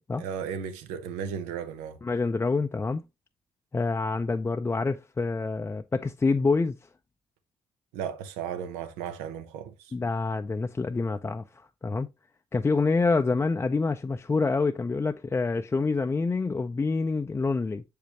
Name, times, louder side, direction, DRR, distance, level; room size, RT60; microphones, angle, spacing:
voice 1, 0.2-2.0 7.9-9.9, right 8 dB, 90° right, 0.7 m, -35 dB
voice 2, 2.0-3.0 3.7-6.8 9.9-11.4 11.8-12.1 12.5-17.8, left 4 dB, 20° left, 0.4 m, -27 dB
6.6 x 5.1 x 2.8 m
supercardioid pair, 65°, 11 cm